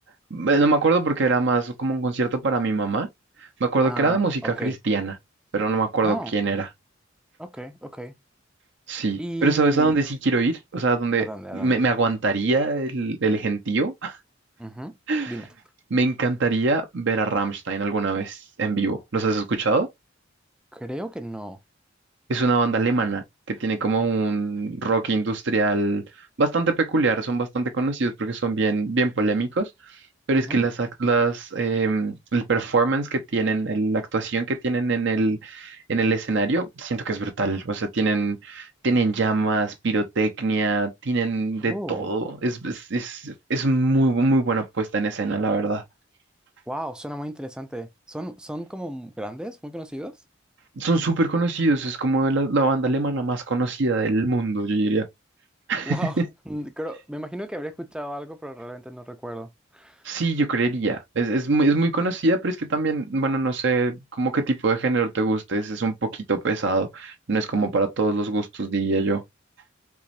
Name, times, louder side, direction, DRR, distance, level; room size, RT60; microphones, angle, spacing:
voice 1, 0.3-3.1 3.6-5.1 5.5-6.7 8.9-11.3 11.5-14.2 15.1-15.4 15.9-19.9 22.3-26.0 26.4-30.0 30.3-45.8 50.8-55.1 55.7-56.2 60.0-69.2, right 3 dB, 60° right, 0.8 m, -23 dB
voice 2, 3.8-4.8 6.0-6.3 7.4-8.1 9.2-10.0 11.2-11.8 14.6-15.0 15.3-15.5 20.7-21.6 30.3-30.6 41.6-42.1 46.7-50.2 55.9-56.2 56.5-60.0, right 1 dB, 5° right, 0.5 m, -34 dB
4.7 x 3.0 x 2.6 m
head